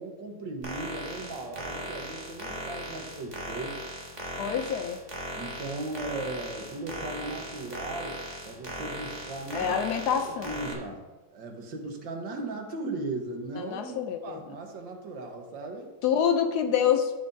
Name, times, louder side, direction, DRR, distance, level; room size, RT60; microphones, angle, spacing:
voice 1, 0.0-3.8 5.4-8.2 8.4-9.8 10.1-15.9, right 2 dB, 80° right, 3 dB, 1.9 m, -37 dB
sound 1, 0.6-10.7, equal, 25° right, 1.5 m, -38 dB
voice 2, 4.4-5.0 9.5-10.5 13.6-14.4 16.0-17.1, left 8 dB, 70° left, 7 dB, 1.0 m, -26 dB
14.0 x 5.6 x 2.7 m, 1.2 s
omnidirectional pair, 2.0 m